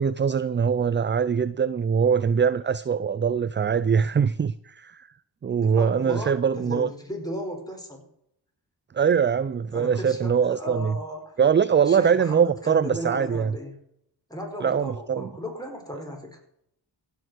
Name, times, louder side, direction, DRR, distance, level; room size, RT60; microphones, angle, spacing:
voice 1, 0.0-5.1 5.4-6.9 8.9-10.9 11.4-13.5 14.6-15.3, right 7 dB, 30° right, 16 dB, 0.4 m, -22 dB
voice 2, 5.6-8.0 9.7-11.3 11.9-13.8 14.3-16.4, equal, 10° left, 2 dB, 4.6 m, -36 dB
15.5 x 6.7 x 6.3 m, 0.75 s
cardioid pair, 60°, 44 cm